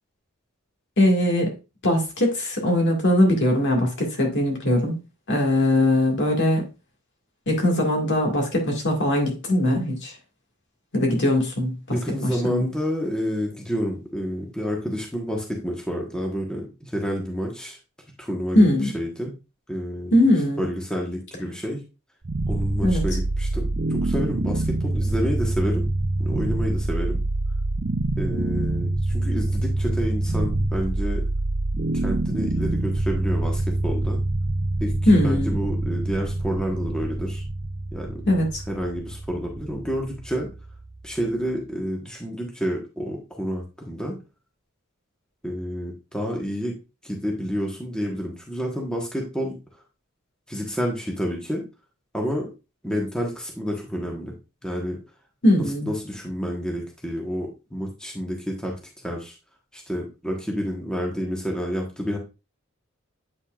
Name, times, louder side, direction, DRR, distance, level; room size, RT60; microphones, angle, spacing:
voice 1, 1.0-1.5 1.8-5.0 5.3-6.6 7.5-10.1 10.9-12.0 12.2-12.7 18.5-18.9 20.1-20.6 22.8-23.0 35.1-35.6 38.3-38.6 55.4-55.9, left 1 dB, 55° left, 2.0 m, -20 dB
voice 2, 11.9-17.8 18.2-19.3 19.7-20.1 20.6-21.8 22.5-25.9 26.2-27.2 28.2-31.2 32.0-34.2 34.8-34.9 35.2-37.4 37.9-38.2 38.7-40.5 41.0-44.1 45.4-46.7 47.0-49.5 50.5-51.6 52.1-52.5 52.8-54.3 54.6-55.0 55.9-58.7 59.0-59.3 59.7-62.2, equal, 5° left, 1.3 m, -29 dB
sound 1, 22.2-41.3, right 2 dB, 40° right, 0.7 m, -26 dB
8.4 x 5.5 x 2.4 m
head